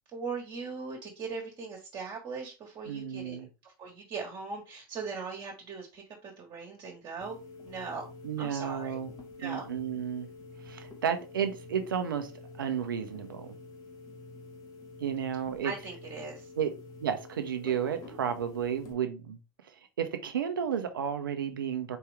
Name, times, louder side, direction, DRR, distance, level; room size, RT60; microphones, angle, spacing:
voice 1, 0.1-7.4 7.6-8.0 8.4-9.0 9.4-9.7 15.6-16.5, right 4 dB, 40° right, 1.5 m, -39 dB
voice 2, 2.9-3.5 8.2-9.1 9.4-10.3 10.6-13.5 15.0-15.7 16.6-16.7 17.0-19.4 19.7-22.0, right 8 dB, 85° right, 0.7 m, -32 dB
sound 1, 7.2-18.9, left 3 dB, 40° left, 1.6 m, -48 dB
4.4 x 3.0 x 3.4 m
hypercardioid pair, 85°, 11 cm